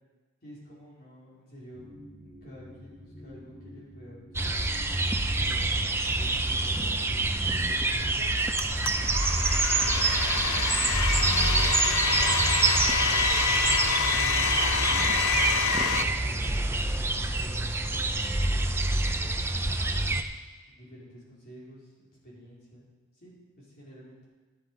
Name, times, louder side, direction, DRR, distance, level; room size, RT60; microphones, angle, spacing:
voice 1, 0.4-1.9 2.2-4.8 5.4-8.6 9.4-13.3 14.1-16.8 17.2-20.1 20.7-22.9 23.1-24.2, equal, 45° left, -6 dB, 4.3 m, -49 dB
sound 1, 1.7-11.6, left 1 dB, 15° left, 2.9 m, -51 dB
sound 2, 4.3-20.2, right 2 dB, 10° right, 0.5 m, -26 dB
Domestic sounds home sounds, 8.6-16.0, left 5 dB, 70° left, 0.8 m, -27 dB
11.5 x 11.5 x 4.9 m, 1.3 s
head